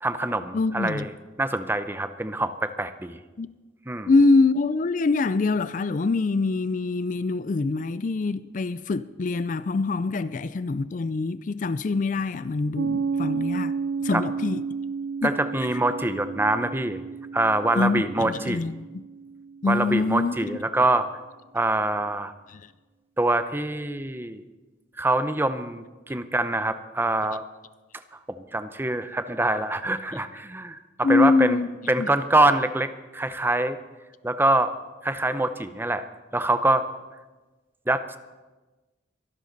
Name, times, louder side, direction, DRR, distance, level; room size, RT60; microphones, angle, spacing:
voice 1, 0.0-1.1 1.4-3.2 3.9-4.1 14.1-14.2 15.2-17.0 17.3-18.6 19.7-21.1 21.5-22.3 23.2-24.4 25.0-27.4 28.3-31.6 31.9-33.8 34.2-34.7 35.0-36.0 36.3-36.8 37.9-38.2, right 2 dB, 10° right, 0.6 m, -25 dB
voice 2, 0.5-1.1 3.4-3.5 4.1-13.8 14.0-14.6 15.2-15.3 17.8-18.9 19.6-20.4 22.5-22.6 31.0-31.7 32.0-32.1, left 3 dB, 40° left, 0.4 m, -24 dB
Piano, 12.7-20.0, right 5 dB, 70° right, 0.5 m, -32 dB
23.0 x 12.5 x 4.0 m
head